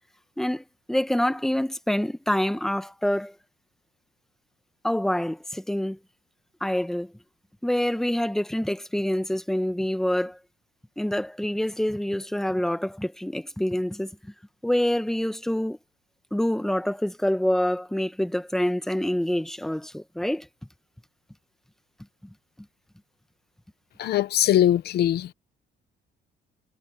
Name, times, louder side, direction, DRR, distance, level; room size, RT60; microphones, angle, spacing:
voice 1, 0.4-3.3 4.8-6.0 6.6-7.1 7.6-10.4 11.0-14.1 14.6-15.8 16.3-20.5, left 1 dB, ahead, 1.1 m, -26 dB
voice 2, 24.0-25.3, left 12 dB, 60° left, 0.8 m, -21 dB
cardioid pair, 165°, 19 cm